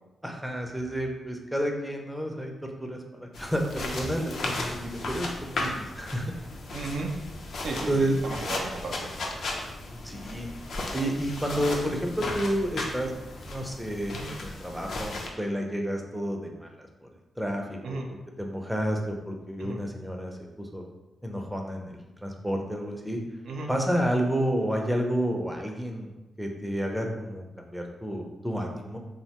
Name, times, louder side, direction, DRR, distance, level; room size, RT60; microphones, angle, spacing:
voice 1, 0.2-2.5 2.8-6.3 7.9-8.2 9.8-10.5 10.9-13.1 13.4-16.8 17.0-17.1 17.4-18.0 18.4-20.8 21.2-23.2 23.7-26.1 26.4-29.0, equal, 5° right, 2 dB, 0.5 m, -30 dB
sound 1, 3.3-15.3, left 2 dB, 70° left, 0.4 m, -35 dB
voice 2, 6.7-7.1 7.6-9.1 14.1-14.3 17.8-18.1 19.6-19.8 23.5-23.7, right 3 dB, 80° right, 1 dB, 0.4 m, -34 dB
2.9 x 2.1 x 2.8 m, 1.0 s
cardioid pair, 65°, 0 cm